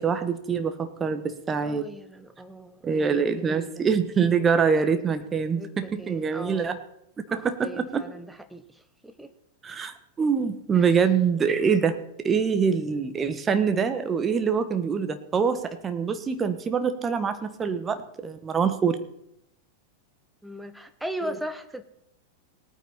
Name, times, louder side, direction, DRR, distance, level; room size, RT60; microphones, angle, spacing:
voice 1, 0.0-1.9 2.8-6.8 7.3-8.0 9.6-11.9 12.2-19.0 21.2-21.4, right 6 dB, 20° right, 9 dB, 1.3 m, -25 dB
voice 2, 1.6-3.9 5.6-6.8 7.6-9.3 10.7-10.9 20.4-21.8, right 1 dB, 5° right, 8 dB, 1.2 m, -38 dB
19.0 x 9.2 x 4.3 m, 0.78 s
figure-of-eight pair, 90°, 0 cm